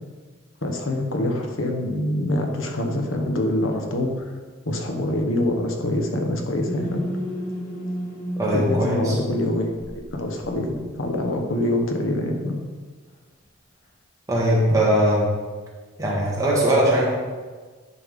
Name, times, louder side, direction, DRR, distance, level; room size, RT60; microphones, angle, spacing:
voice 1, 0.6-4.1 4.6-7.0 8.5-12.6, left 1 dB, 70° left, 2 dB, 1.2 m, -25 dB
sound 1, 6.7-11.4, equal, 45° left, 2.0 m, -33 dB
voice 2, 8.4-9.2 14.3-15.3 16.0-17.1, right 1 dB, 15° right, -5 dB, 1.8 m, -20 dB
10.0 x 5.5 x 3.7 m, 1.4 s
head